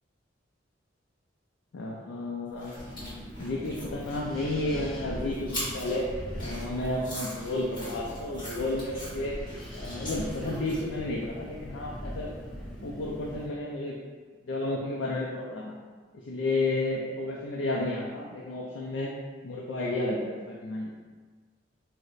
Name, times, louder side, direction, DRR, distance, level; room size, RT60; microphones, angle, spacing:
voice 1, 1.7-3.1 3.4-6.1 6.4-9.3 9.7-12.3 12.8-13.9 14.5-15.8 16.1-19.1 19.4-20.9, left 2 dB, 85° left, -3 dB, 0.4 m, -32 dB
sound 1, 2.5-11.0, equal, 25° left, 1.3 m, -42 dB
Wind, 2.8-13.5, equal, 5° left, 0.7 m, -40 dB
3.0 x 2.1 x 3.8 m, 1.5 s
head